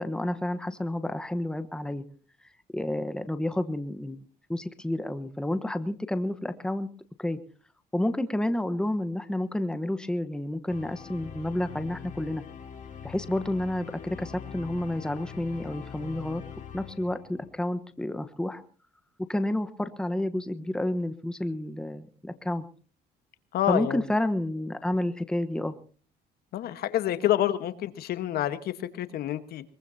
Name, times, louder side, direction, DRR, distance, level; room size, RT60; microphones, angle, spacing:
voice 1, 0.0-2.0 2.7-4.2 4.5-6.9 7.2-7.4 7.9-12.4 13.0-16.4 16.7-18.6 19.3-22.6 23.7-25.7, left 1 dB, 5° left, 10 dB, 1.1 m, -30 dB
sound 1, 10.7-17.7, left 8 dB, 45° left, 3.2 m, -43 dB
voice 2, 23.5-24.0 26.5-29.6, left 12 dB, 70° left, 11 dB, 1.3 m, -28 dB
22.5 x 22.0 x 2.8 m, 0.39 s
cardioid pair, 110°, 17 cm